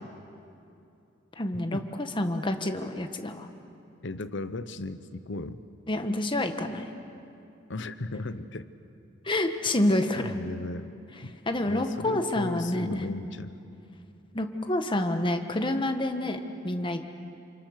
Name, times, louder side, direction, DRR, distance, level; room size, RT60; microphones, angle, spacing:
voice 1, 1.4-1.8 2.2-3.5 5.9-6.9 9.2-10.3 11.5-13.0 14.3-17.0, left 1 dB, 25° left, 6 dB, 1.4 m, -28 dB
voice 2, 4.0-5.6 7.7-8.7 10.1-11.0 11.2-13.6, left 2 dB, 70° left, 11 dB, 1.0 m, -36 dB
28.5 x 26.5 x 6.6 m, 2.7 s
head